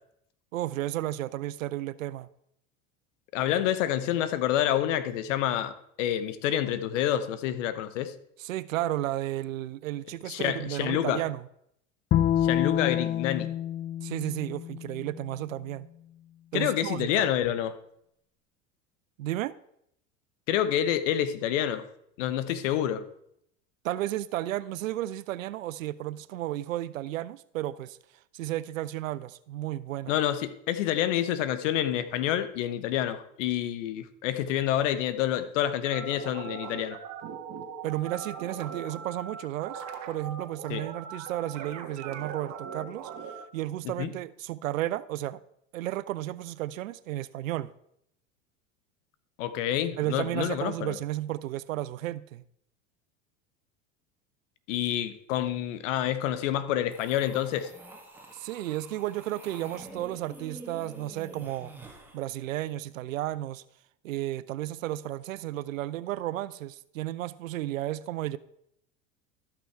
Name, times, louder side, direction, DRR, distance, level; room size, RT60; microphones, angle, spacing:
voice 1, 0.5-2.3 8.4-11.5 14.0-15.9 16.5-17.3 19.2-19.5 23.8-28.0 28.3-30.2 37.8-43.1 43.5-45.4 45.7-47.7 50.0-52.4 58.3-61.7 62.1-63.6 64.0-68.4, right 14 dB, 85° right, 0.6 m, -33 dB
voice 2, 3.3-8.1 10.3-11.2 12.4-13.5 16.5-17.8 20.5-21.8 22.2-23.0 30.1-37.0 40.7-40.8 43.8-44.1 49.4-51.0 54.7-57.7, left 11 dB, 70° left, 1.0 m, -28 dB
Bowed string instrument, 12.1-15.4, left 11 dB, 30° left, 0.4 m, -28 dB
sound 1, 35.8-43.4, right 7 dB, 45° right, 1.7 m, -40 dB
sound 2, 56.9-62.2, right 2 dB, 5° right, 1.9 m, -47 dB
13.0 x 5.9 x 4.5 m
hypercardioid pair, 90°, 38 cm